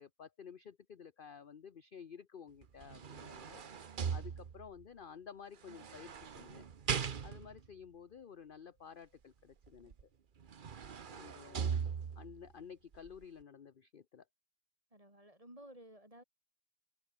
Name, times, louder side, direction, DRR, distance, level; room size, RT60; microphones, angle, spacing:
voice 1, 0.0-3.6 4.1-6.7 7.2-9.9 11.1-11.8 12.2-14.3, left 7 dB, 40° left, 0.9 m, -53 dB
sound 1, 2.6-4.8 5.7-7.7 9.9-10.0 10.4-12.4 12.9-13.1, right 7 dB, 40° right, 0.8 m, -39 dB
voice 2, 14.9-16.2, right 1 dB, 20° right, 7.8 m, -55 dB
open air
omnidirectional pair, 1.7 m